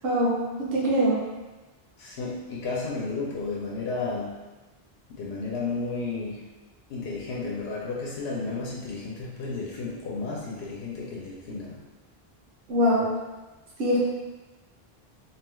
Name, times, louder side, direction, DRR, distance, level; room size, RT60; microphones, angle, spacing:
voice 1, 0.0-0.4 0.7-1.2 12.7-13.1 13.8-14.0, equal, 75° right, -6 dB, 1.0 m, -22 dB
voice 2, 2.0-4.4 5.1-6.5 6.9-11.8, left 3 dB, 90° left, -4 dB, 0.8 m, -32 dB
2.8 x 2.2 x 3.0 m, 1.2 s
omnidirectional pair, 1.0 m